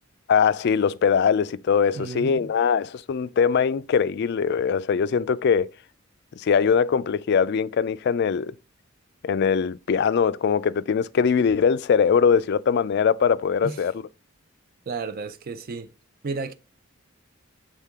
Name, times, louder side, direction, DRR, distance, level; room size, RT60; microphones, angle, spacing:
voice 1, 0.3-5.7 6.4-8.5 9.2-13.9, left 6 dB, 55° left, 0.3 m, -21 dB
voice 2, 1.9-2.5 13.6-13.8 14.9-15.9 16.2-16.5, right 4 dB, 45° right, 0.4 m, -32 dB
7.4 x 3.6 x 3.5 m
head